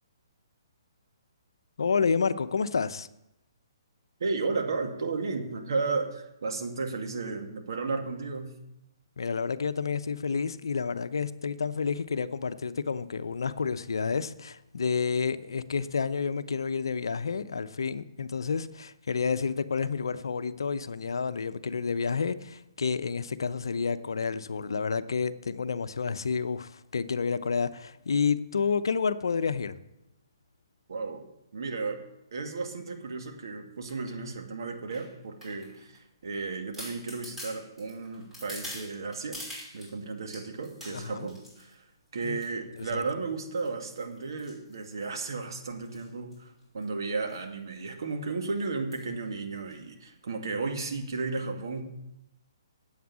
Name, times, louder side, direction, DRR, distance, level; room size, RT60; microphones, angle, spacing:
voice 1, 1.8-3.1 9.2-29.8 40.9-41.3 42.2-42.4 42.8-43.0, left 5 dB, 70° left, 0.7 m, -30 dB
voice 2, 4.2-8.5 30.9-31.2 31.5-32.0 32.3-39.4 39.7-41.8 42.1-51.8, right 4 dB, 65° right, 2.3 m, -34 dB
sound 1, 33.9-34.1 34.9-36.0 36.4-36.5 36.7-39.9 40.3-41.7 42.2-42.5 42.8-43.1 43.5-45.3 45.8-46.1 46.3-46.4 46.6-46.8 47.3-47.5 47.8-47.9 48.9-49.1 49.7-49.8, left 1 dB, 5° right, 5.8 m, -45 dB
9.4 x 8.2 x 8.4 m
figure-of-eight pair, 135°, 2 cm